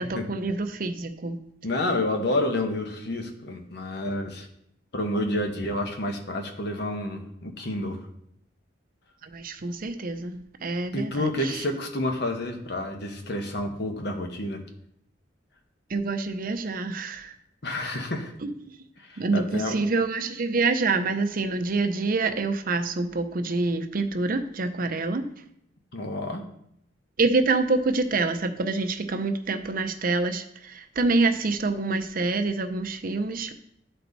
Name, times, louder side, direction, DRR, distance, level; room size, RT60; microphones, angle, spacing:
voice 1, 0.0-1.4 9.2-11.6 15.9-17.3 18.4-18.7 19.2-25.3 27.2-33.5, right 3 dB, 50° right, 8 dB, 0.7 m, -26 dB
voice 2, 1.6-4.5 4.9-8.0 10.9-14.6 17.6-18.3 19.0-19.8 25.9-26.4, left 1 dB, 65° left, 4 dB, 1.2 m, -29 dB
11.5 x 4.5 x 4.0 m, 0.73 s
head